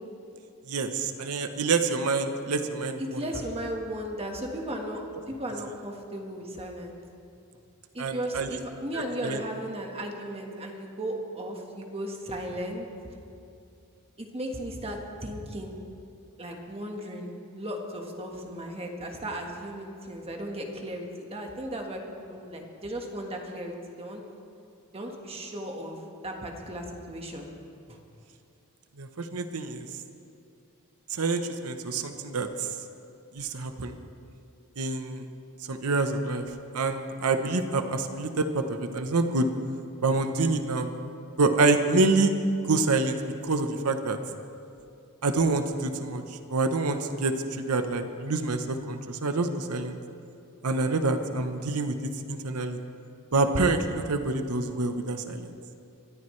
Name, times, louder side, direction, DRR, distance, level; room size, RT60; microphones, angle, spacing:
voice 1, 0.7-3.2 8.0-8.5 8.9-9.4 29.0-29.9 31.1-32.7 33.3-33.9 34.8-35.2 35.7-36.5 36.7-39.5 40.0-40.9 41.4-42.3 42.6-44.2 45.2-50.0 50.6-51.9 52.3-52.8 53.3-55.5, right 3 dB, 90° right, 7 dB, 0.9 m, -27 dB
voice 2, 3.0-6.9 7.9-12.9 14.2-15.8 16.4-22.0 22.3-24.2 24.9-26.0 26.2-27.5 27.9-28.0, equal, 25° right, 2 dB, 1.5 m, -36 dB
23.0 x 14.0 x 3.3 m, 2.5 s
head